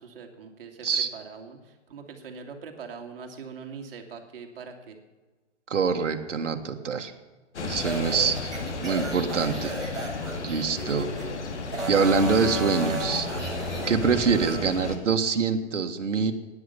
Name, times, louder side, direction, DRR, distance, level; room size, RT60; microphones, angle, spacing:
voice 1, 0.0-5.0, right 5 dB, 50° right, 4 dB, 2.6 m, -43 dB
voice 2, 5.7-7.1 7.6-8.5 8.8-9.7 10.4-11.1 11.9-13.3 13.9-16.3, right 5 dB, 75° right, 5 dB, 1.7 m, -25 dB
sound 1, 7.5-15.0, left 3 dB, 65° left, 2.6 m, -33 dB
sound 2, 7.8-11.3 11.7-14.6, right 1 dB, ahead, 4.7 m, -34 dB
12.5 x 9.8 x 8.4 m, 1.3 s
hypercardioid pair, 145°, 37 cm